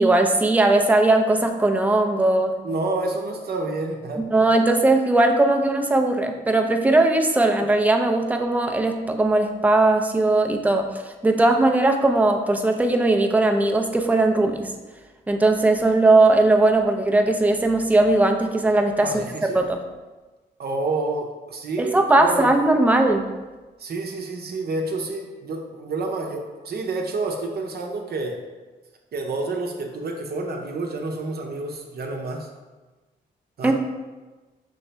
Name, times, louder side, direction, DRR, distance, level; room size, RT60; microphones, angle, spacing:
voice 1, 0.0-2.6 4.2-10.9 11.2-14.7 15.3-19.8 21.8-23.3 33.6-33.7, right 2 dB, 10° right, 4 dB, 0.5 m, -19 dB
voice 2, 2.6-4.5 19.0-19.6 20.6-22.6 23.8-28.4 29.1-32.5 33.6-33.7, right 2 dB, 60° right, 2 dB, 0.7 m, -29 dB
5.4 x 2.8 x 3.3 m, 1.2 s
cardioid pair, 65°, 19 cm